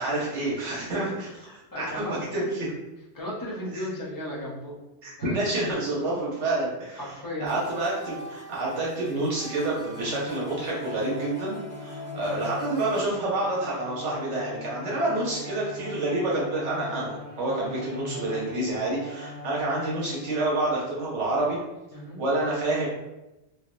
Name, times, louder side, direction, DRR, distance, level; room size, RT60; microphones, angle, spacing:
voice 1, 0.0-1.3 1.8-2.8 3.7-3.8 5.0-7.0 7.4-21.6 22.2-22.9, right 2 dB, 80° right, -5 dB, 1.1 m, -28 dB
voice 2, 0.9-2.2 3.1-4.7 5.2-5.4 6.1-6.2 7.0-7.5 12.0-12.4 17.5-17.7 19.5-19.6 21.9-22.2, left 1 dB, 20° left, -5 dB, 0.6 m, -36 dB
sound 1, 7.5-13.1, left 1 dB, 60° left, 0.4 m, -42 dB
Bowed string instrument, 9.9-21.1, left 2 dB, 45° right, 0.9 m, -42 dB
3.4 x 2.2 x 2.4 m, 0.99 s
omnidirectional pair, 1.2 m